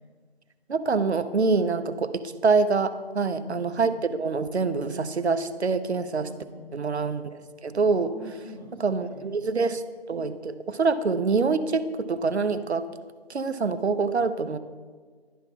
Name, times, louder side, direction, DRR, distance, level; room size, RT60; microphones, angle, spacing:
voice 1, 0.7-6.3 6.7-8.1 8.8-9.8 10.1-12.9 13.3-14.6, right 4 dB, 90° right, 12 dB, 0.6 m, -25 dB
voice 2, 3.4-4.2 6.2-6.8 7.9-9.3, left 2 dB, 40° left, -5 dB, 2.5 m, -44 dB
11.0 x 4.0 x 5.8 m, 1.5 s
figure-of-eight pair, 165°, 32 cm